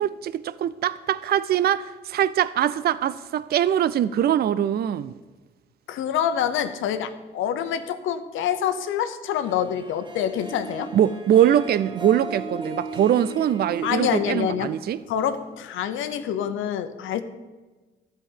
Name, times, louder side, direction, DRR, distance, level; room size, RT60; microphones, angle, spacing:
voice 1, 0.0-5.1 10.9-15.0, right 10 dB, 50° right, 0.4 m, -22 dB
voice 2, 5.9-10.9 13.8-14.7 15.1-17.2, left 9 dB, 85° left, 0.9 m, -26 dB
Harp, 9.4-15.7, right 3 dB, 25° right, 1.7 m, -37 dB
12.5 x 5.1 x 8.9 m
cardioid pair, 90°, 20 cm